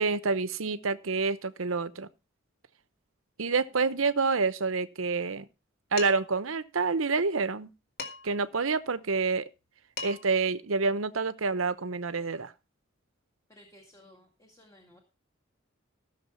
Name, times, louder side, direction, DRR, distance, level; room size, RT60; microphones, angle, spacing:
voice 1, 0.0-2.1 3.4-5.5 5.9-7.7 8.2-9.5 10.0-12.5, right 4 dB, 85° right, 0.9 m, -28 dB
Dishes pots and pans, 6.0-6.4 8.0-8.5 9.6-9.7 10.0-10.4, left 5 dB, 50° left, 2.5 m, -39 dB
voice 2, 13.5-15.0, left 1 dB, 15° left, 2.2 m, -56 dB
15.5 x 6.8 x 5.6 m
head